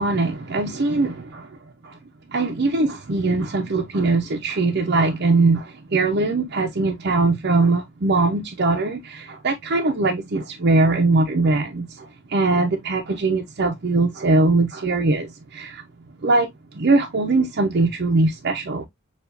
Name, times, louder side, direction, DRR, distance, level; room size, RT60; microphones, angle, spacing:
voice 1, 0.0-1.6 1.8-2.0 2.3-15.8 16.2-18.8, right 3 dB, 55° right, 0.7 m, -21 dB
6.8 x 2.5 x 2.5 m
head